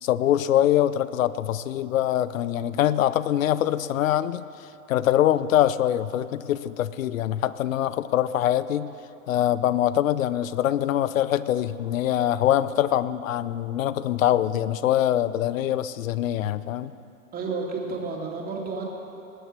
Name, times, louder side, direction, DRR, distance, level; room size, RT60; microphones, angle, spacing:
voice 1, 0.0-4.4 4.9-8.9 9.3-16.9, left 12 dB, 65° left, 16 dB, 0.7 m, -23 dB
voice 2, 17.3-18.9, right 4 dB, 20° right, -1 dB, 2.5 m, -31 dB
19.5 x 7.1 x 7.6 m, 2.8 s
hypercardioid pair, 120°, 42 cm